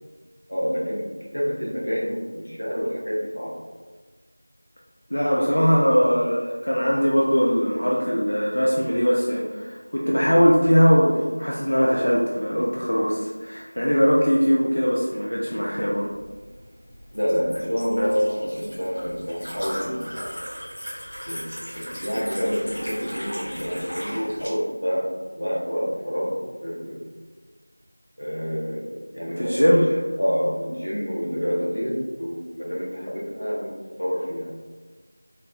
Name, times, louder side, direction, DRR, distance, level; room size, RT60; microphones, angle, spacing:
voice 1, 0.5-3.6 17.1-20.4 21.3-27.0 28.2-33.7 34.0-34.5, equal, 85° left, -4 dB, 1.3 m, -28 dB
voice 2, 5.1-16.1 18.0-18.1 29.4-29.8, equal, 50° left, -4 dB, 0.5 m, -21 dB
Liquid, 16.1-24.5, equal, 10° left, 1.4 m, -37 dB
4.6 x 3.1 x 2.4 m, 1.4 s
figure-of-eight pair, 175°, 0 cm